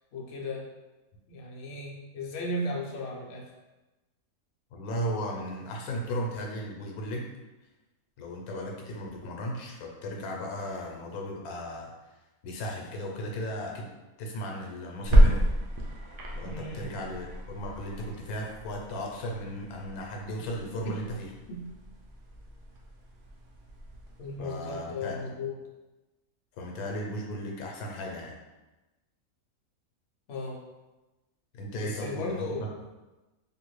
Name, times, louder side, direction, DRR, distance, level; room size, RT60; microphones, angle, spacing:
voice 1, 0.1-0.7 1.3-3.5 16.4-17.0 20.4-20.5 20.8-21.0 21.5-21.6 24.2-25.5 30.3-30.6 31.7-32.6, left 2 dB, 65° left, -2 dB, 0.8 m, -36 dB
voice 2, 4.7-7.3 8.2-12.1 12.4-13.9 14.2-15.5 16.3-21.3 24.4-25.1 26.6-28.3 31.5-32.7, equal, 90° left, 0 dB, 1.1 m, -36 dB
sound 1, 15.0-24.4, right 1 dB, 75° right, 0.5 m, -29 dB
2.7 x 2.5 x 3.0 m, 1.1 s
omnidirectional pair, 1.5 m